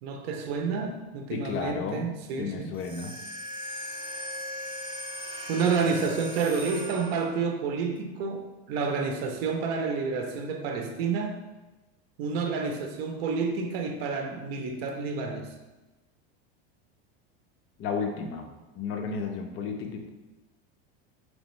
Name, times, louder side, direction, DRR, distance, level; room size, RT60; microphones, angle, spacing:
voice 1, 0.0-2.7 5.5-11.4 12.2-15.5, right 5 dB, 75° right, 4 dB, 0.6 m, -29 dB
voice 2, 1.3-2.0 2.4-3.1 17.8-20.1, left 5 dB, 40° left, 3 dB, 0.7 m, -33 dB
sound 1, 2.7-7.5, left 1 dB, 15° right, 1.1 m, -38 dB
4.1 x 3.3 x 3.1 m, 1.1 s
supercardioid pair, 130°, 31 cm